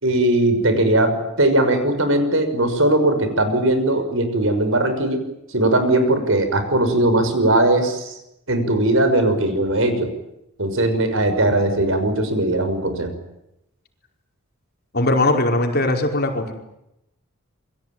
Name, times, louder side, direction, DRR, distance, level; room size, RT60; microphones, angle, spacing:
voice 1, 0.0-5.2 5.5-8.2 8.5-10.1 10.6-13.2, right 1 dB, 65° right, 8 dB, 6.1 m, -19 dB
voice 2, 14.9-16.5, left 2 dB, 45° left, 3 dB, 5.0 m, -19 dB
28.0 x 23.5 x 9.1 m, 0.85 s
head